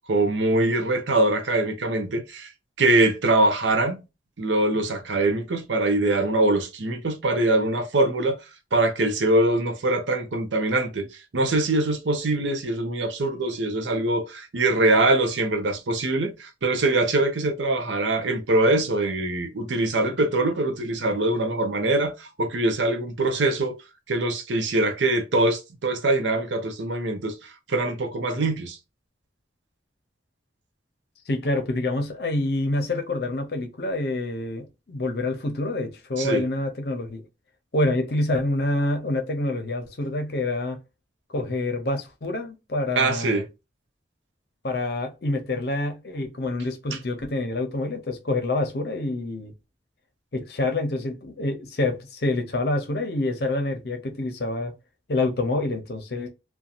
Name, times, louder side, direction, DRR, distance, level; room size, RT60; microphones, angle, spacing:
voice 1, 0.1-2.5 2.8-4.0 4.4-8.4 8.7-11.1 11.3-23.8 24.1-28.8 36.2-36.4 43.0-43.4 46.9-47.0, right 2 dB, 85° right, 0.6 m, -23 dB
voice 2, 31.3-37.3 37.7-40.8 41.3-43.4 44.6-49.5 50.3-54.7 55.1-56.3, left 2 dB, 60° left, 0.6 m, -27 dB
2.7 x 2.2 x 2.4 m
head